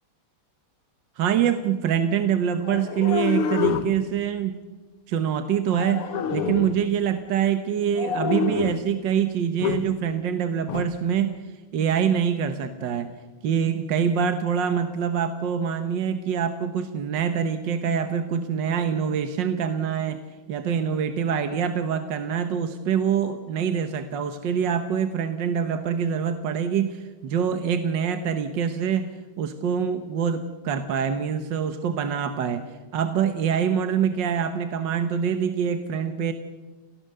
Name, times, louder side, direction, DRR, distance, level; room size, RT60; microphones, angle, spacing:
voice 1, 1.2-4.6 5.1-11.4 11.7-13.1 13.4-32.6 32.9-36.3, right 8 dB, 60° right, 9 dB, 1.6 m, -25 dB
sound 1, 2.6-4.0 5.7-6.8 7.9-8.9 9.6-9.9 10.7-10.9, left 7 dB, 85° left, 2.1 m, -27 dB
29.0 x 17.5 x 6.7 m, 1.3 s
omnidirectional pair, 2.4 m